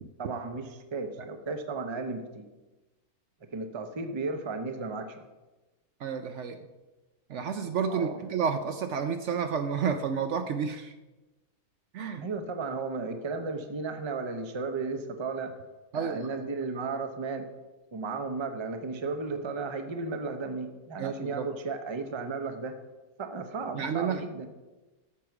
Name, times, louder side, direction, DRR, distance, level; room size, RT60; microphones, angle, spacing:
voice 1, 0.2-2.5 3.5-5.2 7.9-8.2 12.2-15.5 15.9-17.5 17.9-22.8 23.2-24.5, right 4 dB, 30° right, 7 dB, 0.6 m, -34 dB
voice 2, 6.0-6.6 7.3-10.9 11.9-12.2 15.9-16.5 21.0-21.5 23.7-24.2, right 6 dB, 65° right, 8 dB, 0.8 m, -30 dB
8.5 x 6.6 x 5.9 m, 1.1 s
omnidirectional pair, 1.5 m